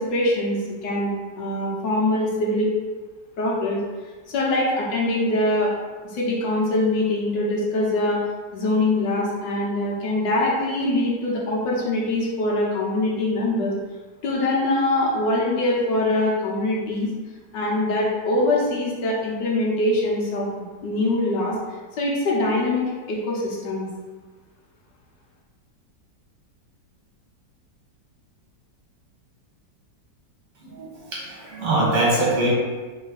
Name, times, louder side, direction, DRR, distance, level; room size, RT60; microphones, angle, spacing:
voice 1, 0.0-2.7 3.4-3.8 4.3-5.7 6.1-8.2 8.5-13.7 14.2-17.1 17.5-21.5 22.0-22.8 23.1-23.9, left 1 dB, 90° left, -4 dB, 1.7 m, -23 dB
voice 2, 30.6-32.5, right 2 dB, 75° right, -5 dB, 2.1 m, -23 dB
3.8 x 3.4 x 4.0 m, 1.3 s
omnidirectional pair, 1.9 m